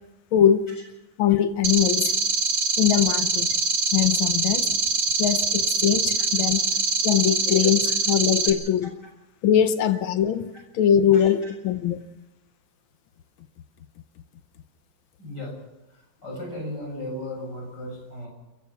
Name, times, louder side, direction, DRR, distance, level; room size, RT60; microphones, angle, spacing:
voice 1, 0.3-0.7 1.2-2.1 2.8-3.5 3.9-4.7 5.2-6.6 7.0-8.9 9.4-12.0, left 9 dB, 80° left, 1.8 m, -22 dB
sound 1, 1.6-8.5, right 4 dB, 80° right, 2.8 m, -24 dB
voice 2, 11.1-11.5 15.2-15.6 15.9-18.3, left 1 dB, 55° left, 8.3 m, -37 dB
29.0 x 15.5 x 6.0 m
omnidirectional pair, 2.2 m